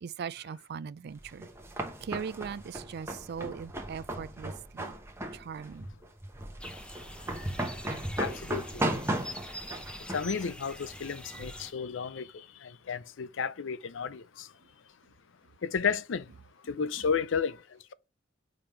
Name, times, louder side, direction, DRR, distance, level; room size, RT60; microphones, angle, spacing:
voice 1, 0.0-1.5 2.0-4.9 5.3-5.9, right 6 dB, 55° right, 0.3 m, -39 dB
sound 1, 1.2-11.6, right 1 dB, 15° right, 0.9 m, -36 dB
sound 2, 6.6-11.7, left 1 dB, 5° left, 0.5 m, -45 dB
voice 2, 8.2-8.8 10.1-12.3 12.6-14.5 15.6-16.2 16.7-17.6, left 6 dB, 65° left, 0.5 m, -32 dB
5.1 x 3.5 x 5.5 m
head